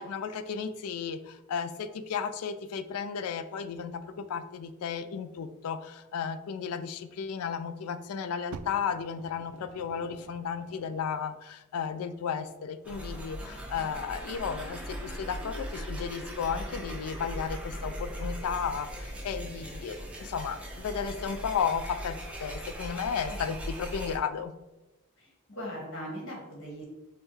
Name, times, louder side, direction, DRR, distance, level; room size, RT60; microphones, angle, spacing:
voice 1, 0.0-24.5, left 6 dB, 90° left, 10 dB, 0.3 m, -34 dB
Fire, 8.5-11.3 12.2-12.3, right 5 dB, 85° right, 0.3 m, -48 dB
sound 1, 12.8-24.2, equal, 5° right, 0.5 m, -39 dB
sound 2, 16.4-21.5, left 1 dB, 35° left, 1.0 m, -51 dB
voice 2, 25.2-26.8, equal, 60° left, -2 dB, 1.4 m, -40 dB
5.4 x 2.2 x 3.1 m, 1.0 s
head